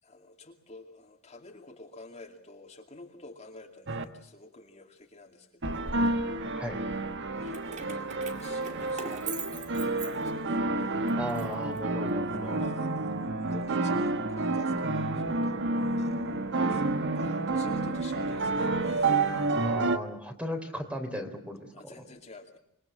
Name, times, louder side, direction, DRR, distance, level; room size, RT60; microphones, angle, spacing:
voice 1, 0.0-5.9 7.3-8.1 8.4-11.1 12.3-13.2 13.4-15.5 16.0-19.7 21.7-22.6, left 2 dB, 30° left, 3 dB, 2.5 m, -50 dB
sound 1, 3.9-4.0 5.6-20.0, right 2 dB, 55° right, 1.5 m, -29 dB
Keys jangling, 7.5-10.6 11.1-12.4, right 6 dB, 35° right, 2.3 m, -42 dB
voice 2, 11.2-12.6 19.5-21.7, equal, 5° right, 6 dB, 3.3 m, -36 dB
26.5 x 22.0 x 7.7 m, 0.74 s
head